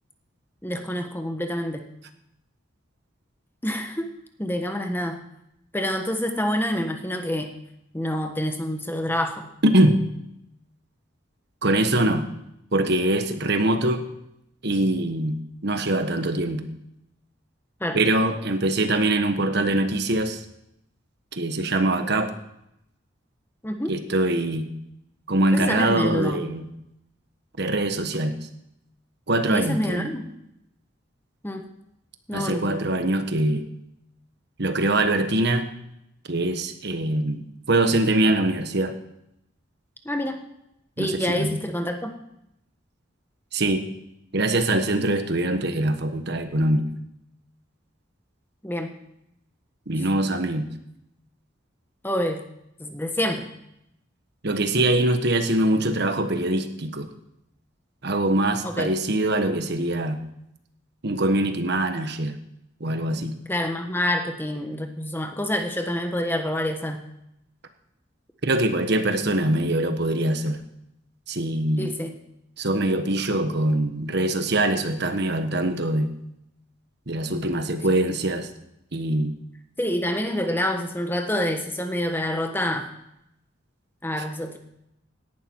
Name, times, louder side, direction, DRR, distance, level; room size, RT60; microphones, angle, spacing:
voice 1, 0.6-1.8 3.6-5.2 5.7-7.5 7.9-9.5 17.8-18.0 23.6-24.0 25.5-26.4 29.5-30.3 31.4-31.6 32.3-32.8 40.0-40.5 41.0-42.1 48.6-48.9 52.0-52.4 52.8-53.5 58.6-58.9 63.5-67.0 71.8-72.1 79.8-82.9 84.0-84.6, left 1 dB, 10° left, 5 dB, 1.3 m, -27 dB
voice 2, 9.6-10.0 11.6-12.3 12.7-14.1 14.6-16.7 17.9-20.4 21.3-22.3 23.9-24.7 25.3-26.6 27.6-28.4 29.3-30.1 32.3-33.7 34.6-35.7 36.3-37.4 37.7-39.0 41.0-41.6 43.5-43.9 44.3-46.9 49.9-50.7 54.4-57.1 58.0-60.2 61.0-62.4 62.8-63.4 68.4-70.6 71.3-71.9 72.6-76.1 77.1-78.5 78.9-79.3, right 1 dB, 60° right, 8 dB, 1.3 m, -23 dB
17.5 x 11.5 x 4.6 m, 0.80 s
head